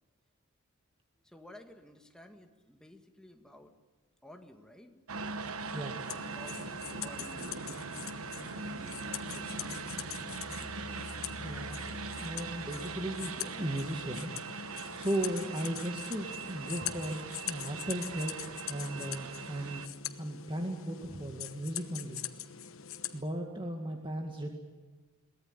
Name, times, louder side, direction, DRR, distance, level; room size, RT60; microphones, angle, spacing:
voice 1, 1.2-3.8 4.2-5.1 6.3-10.0, left 1 dB, 5° left, 4 dB, 1.9 m, -54 dB
sound 1, 5.1-19.9, right 4 dB, 85° right, 1.3 m, -41 dB
sound 2, 6.0-23.2, left 10 dB, 70° left, 1.2 m, -43 dB
sound 3, 9.8-14.5, left 1 dB, 35° left, 2.3 m, -50 dB
voice 2, 11.4-14.3 14.7-19.9 20.2-22.2 23.1-24.5, right 1 dB, 25° right, 2 dB, 2.0 m, -36 dB
23.0 x 18.0 x 9.9 m, 1.4 s
head